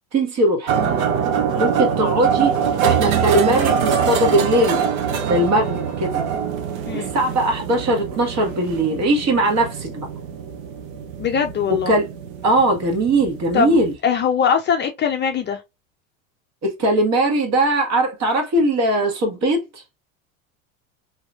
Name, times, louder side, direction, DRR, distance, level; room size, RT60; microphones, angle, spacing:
voice 1, 0.1-0.7 1.6-2.5 2.8-4.8 5.2-6.2 6.9-10.1 11.7-12.1 12.4-13.9 16.6-19.6, right 1 dB, 40° right, 1.4 m, -20 dB
sound 1, 0.7-13.9, right 7 dB, 80° right, 0.8 m, -24 dB
voice 2, 11.2-11.9 13.5-13.8 14.0-15.6, left 7 dB, 25° left, 0.5 m, -21 dB
3.0 x 2.8 x 2.3 m
supercardioid pair, 100°, 40 cm